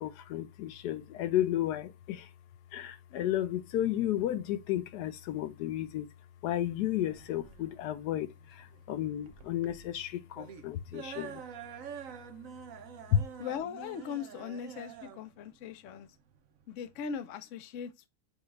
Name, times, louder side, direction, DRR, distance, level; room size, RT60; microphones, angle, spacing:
voice 1, 0.0-2.3 2.7-6.1 6.4-11.4 13.1-13.2, left 12 dB, 85° left, 1.2 m, -32 dB
sound 1, 7.1-17.1, right 8 dB, 65° right, 1.0 m, -47 dB
voice 2, 13.4-16.1 16.7-18.1, left 7 dB, 60° left, 0.9 m, -39 dB
6.9 x 2.4 x 3.1 m
omnidirectional pair, 1.7 m